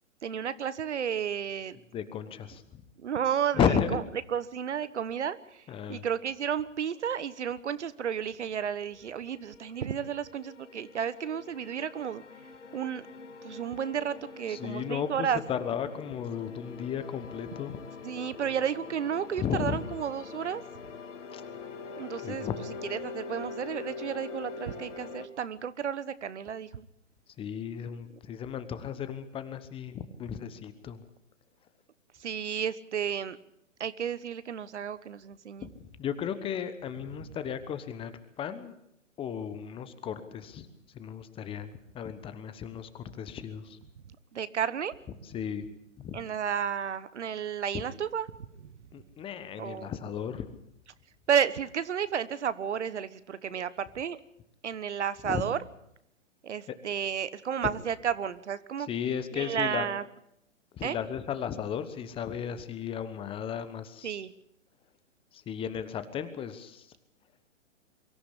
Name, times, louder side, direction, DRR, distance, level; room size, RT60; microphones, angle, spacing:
voice 1, 0.2-1.8 3.0-4.0 4.3-12.2 12.7-13.1 13.4-15.4 18.0-20.6 22.0-22.5 22.9-26.9 32.2-33.4 33.8-35.7 37.2-37.3 44.3-44.9 46.1-48.3 48.6-48.7 49.6-49.9 51.3-54.2 54.6-55.6 56.4-58.9 59.3-60.0 60.8-61.0 64.0-64.3, right 8 dB, 65° right, 16 dB, 1.3 m, -32 dB
voice 2, 1.9-2.8 3.5-4.0 5.7-6.1 14.5-17.8 19.4-19.8 21.3-21.4 22.2-22.8 27.4-31.0 35.6-35.7 36.0-38.7 39.2-40.7 40.9-43.8 45.2-45.7 46.0-46.2 48.9-50.5 53.5-53.6 55.2-55.4 56.7-56.8 58.9-59.9 60.7-64.1 65.3-66.9, left 8 dB, 15° left, 12 dB, 1.1 m, -34 dB
sound 1, 9.1-25.3, left 4 dB, 65° left, 2.7 m, -43 dB
23.5 x 14.5 x 8.4 m, 0.78 s
figure-of-eight pair, 125°, 38 cm